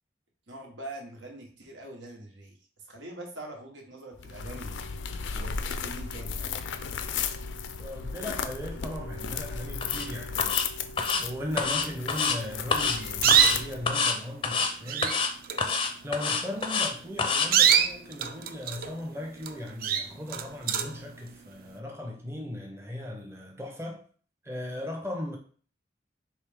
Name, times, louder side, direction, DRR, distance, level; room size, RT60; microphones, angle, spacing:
voice 1, 0.5-2.5 2.9-4.9 5.3-6.5, right 1 dB, 85° right, 1.2 m, -43 dB
sound 1, 4.2-14.1, left 6 dB, 85° left, 0.4 m, -35 dB
voice 2, 7.8-10.5 11.1-15.2 16.0-24.0 24.4-25.4, left 1 dB, 15° right, 0.6 m, -37 dB
sound 2, 9.8-10.1 10.4-10.7 11.0-11.2 11.6-12.4 12.7-13.0 13.3-13.6 13.9-14.2 14.4-14.7 15.0-15.3 15.6-16.9 17.2-17.5, left 5 dB, 30° left, 0.5 m, -27 dB
sound 3, 12.8-13.8 14.5-14.6 14.8-15.2 15.4-15.7 16.6-16.8 17.3-19.0 19.4-19.5 19.8-21.0, right 8 dB, 50° right, 0.4 m, -24 dB
4.6 x 3.2 x 3.5 m
head